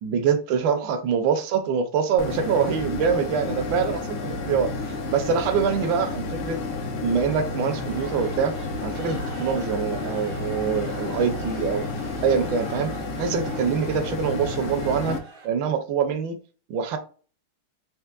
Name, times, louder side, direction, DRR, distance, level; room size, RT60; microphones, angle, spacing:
voice 1, 0.0-6.6 7.0-8.5 8.8-11.9 12.2-15.2 15.4-16.4 16.7-17.0, right 6 dB, 70° right, 8 dB, 1.3 m, -25 dB
sound 1, 2.2-15.2, left 3 dB, 70° left, 1.0 m, -31 dB
sound 2, 4.4-4.8 5.9-6.5 7.1-15.5, right 3 dB, 45° right, 0.7 m, -44 dB
4.5 x 3.2 x 2.3 m, 0.40 s
omnidirectional pair, 2.4 m